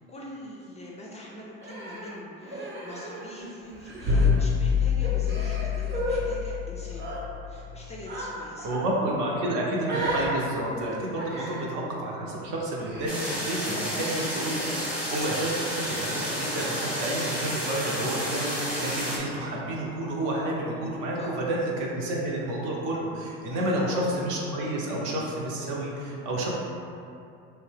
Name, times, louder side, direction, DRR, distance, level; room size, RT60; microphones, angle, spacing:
voice 1, 0.1-7.1 7.5-8.7 11.4-11.5 13.5-13.9 21.2-21.4 23.5-24.0, left 1 dB, 20° left, -4 dB, 0.3 m, -43 dB
Human voice, 1.6-3.4 3.7-4.3 5.0-6.2 6.9-7.2 8.1-8.3 8.6-8.8 9.8-10.3 11.2-11.7 12.8-13.1, right 1 dB, 30° right, 0.7 m, -34 dB
sound 1, 4.1-7.9, left 6 dB, 85° right, 1.1 m, -26 dB
voice 2, 8.6-14.6 14.9-26.5, right 1 dB, 60° right, -3 dB, 0.7 m, -30 dB
sound 2, 13.1-19.2, equal, 5° right, 0.8 m, -31 dB
2.7 x 2.2 x 3.3 m, 2.6 s
supercardioid pair, 95°, 35 cm